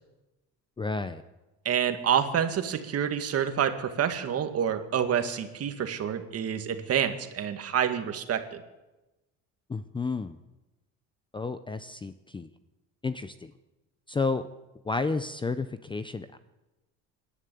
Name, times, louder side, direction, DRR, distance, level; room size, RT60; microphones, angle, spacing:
voice 1, 0.8-1.2 9.7-10.4 11.3-12.5 13.0-13.5 14.1-14.4 14.8-16.4, left 4 dB, 15° left, 12 dB, 0.6 m, -31 dB
voice 2, 1.6-8.6, right 8 dB, 45° right, 7 dB, 2.1 m, -28 dB
26.0 x 11.5 x 9.2 m, 1.1 s
cardioid pair, 145°, 35 cm